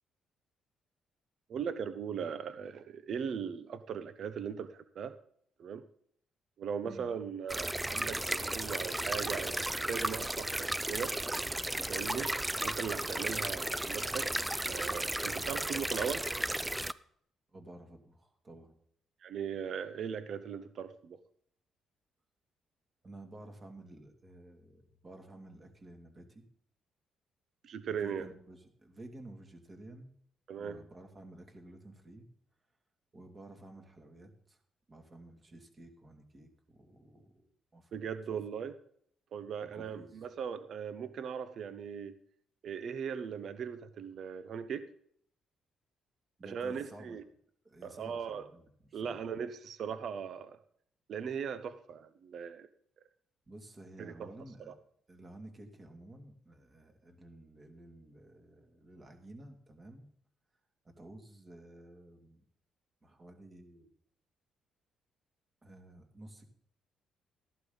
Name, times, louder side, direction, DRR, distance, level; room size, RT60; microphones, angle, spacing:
voice 1, 1.5-5.2 5.6-5.8 6.6-11.2 11.9-12.3 12.6-14.3 14.6-16.3 19.2-21.2 27.6-28.3 30.5-30.8 37.9-38.8 39.3-42.1 42.6-44.9 46.4-47.2 47.8-48.5 48.9-50.6 51.1-52.7 54.0-54.3 54.7-54.8, right 7 dB, 65° right, 12 dB, 0.8 m, -39 dB
sound 1, 7.5-16.9, right 1 dB, 10° right, 0.5 m, -34 dB
voice 2, 17.5-18.7 23.0-26.4 27.9-30.1 30.6-32.2 33.1-34.6 34.9-37.9 38.3-38.4 39.6-40.2 46.4-47.2 47.6-49.2 53.5-54.7 55.1-60.1 60.8-62.4 63.0-63.9 65.6-66.5, right 1 dB, 30° right, 4 dB, 2.5 m, -52 dB
14.0 x 11.5 x 4.0 m, 0.64 s
cardioid pair, 90°, 0 cm